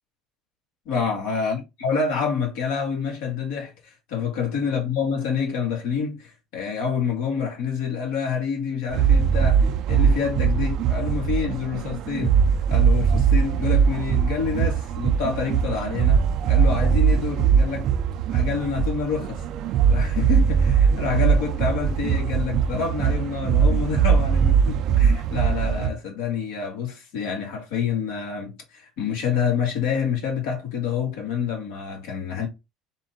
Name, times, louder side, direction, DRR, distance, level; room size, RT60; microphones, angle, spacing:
voice 1, 0.9-12.3 12.7-17.9 18.3-19.4 19.9-32.5, left 6 dB, 80° left, 2.0 m, -27 dB
sound 1, 8.9-25.9, right 7 dB, 60° right, 0.4 m, -21 dB
4.3 x 2.7 x 3.9 m
supercardioid pair, 105°, 0 cm